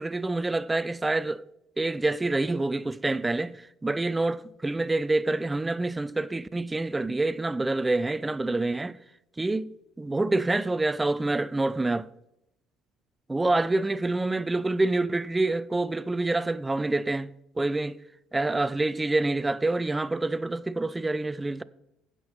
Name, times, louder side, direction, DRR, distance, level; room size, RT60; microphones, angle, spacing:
voice 1, 0.0-1.4 1.8-9.0 9.4-12.1 13.3-17.3 17.6-18.0 18.3-21.6, right 2 dB, 15° right, 0.4 m, -27 dB
16.0 x 6.0 x 4.3 m
cardioid pair, 95°, 0 cm